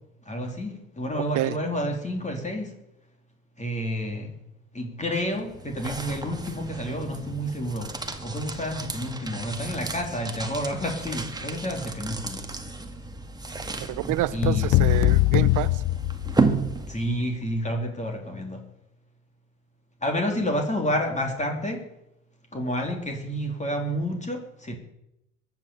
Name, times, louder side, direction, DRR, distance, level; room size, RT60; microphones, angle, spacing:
voice 1, 0.2-2.7 3.6-4.3 4.7-7.9 8.2-12.4 14.3-14.7 16.9-18.6 20.0-21.8 22.5-24.8, equal, 15° left, 2 dB, 3.5 m, -29 dB
sound 1, 5.1-17.3, right 3 dB, 10° right, 2.1 m, -33 dB
voice 2, 13.9-15.7, right 15 dB, 45° right, 18 dB, 1.0 m, -27 dB
sound 2, 14.4-16.7, left 17 dB, 45° left, 0.6 m, -22 dB
22.5 x 9.0 x 7.0 m, 0.87 s
hypercardioid pair, 70°, 42 cm